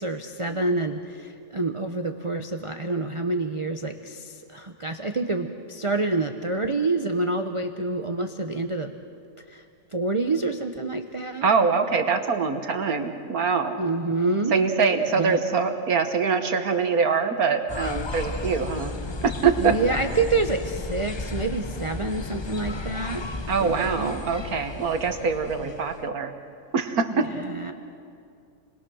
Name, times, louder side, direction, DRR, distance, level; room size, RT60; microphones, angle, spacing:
voice 1, 0.0-8.9 9.5-9.6 9.9-11.5 13.8-14.5 15.2-15.4 19.6-23.2 23.6-24.1 27.3-27.7, right 3 dB, 25° right, 5 dB, 0.7 m, -27 dB
voice 2, 11.4-13.8 14.5-18.9 19.2-19.8 23.5-26.3 26.7-27.3, right 5 dB, 65° right, 6 dB, 1.8 m, -24 dB
sound 1, 17.7-26.1, left 3 dB, 35° left, 0.4 m, -34 dB
29.5 x 21.0 x 6.3 m, 2.4 s
omnidirectional pair, 1.7 m